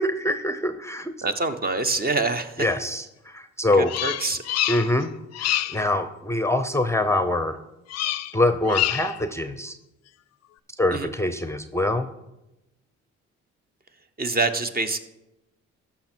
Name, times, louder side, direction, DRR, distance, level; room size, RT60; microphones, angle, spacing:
voice 1, 0.0-1.1 2.6-3.0 3.3-3.9 4.7-5.1 5.4-7.6 8.3-9.7 10.8-12.1, left 1 dB, 10° left, 9 dB, 0.6 m, -24 dB
voice 2, 1.2-2.7 3.8-4.4 10.9-11.1 14.2-15.0, right 3 dB, 30° right, 9 dB, 0.8 m, -25 dB
Bird vocalization bird call bird song, 3.9-5.0 5.3-5.8 7.9-8.4 8.7-9.2, left 14 dB, 60° left, 0.4 m, -26 dB
14.0 x 5.9 x 4.4 m, 0.95 s
cardioid pair, 90°, 30 cm